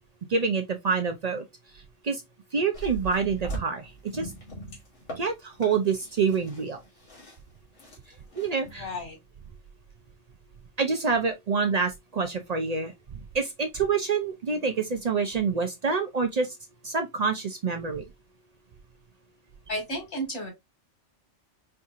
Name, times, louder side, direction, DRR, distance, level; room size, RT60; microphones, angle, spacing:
voice 1, 0.3-1.4 2.0-2.2 2.5-4.3 5.2-6.8 8.4-8.9 10.8-12.9 13.3-16.6 16.8-18.0, right 5 dB, 50° right, 0.5 m, -27 dB
sound 1, 2.7-9.0, right 2 dB, 85° left, 2.0 m, -40 dB
voice 2, 8.8-9.2 19.7-20.5, equal, 65° left, 2.1 m, -32 dB
4.5 x 2.7 x 2.4 m
omnidirectional pair, 1.2 m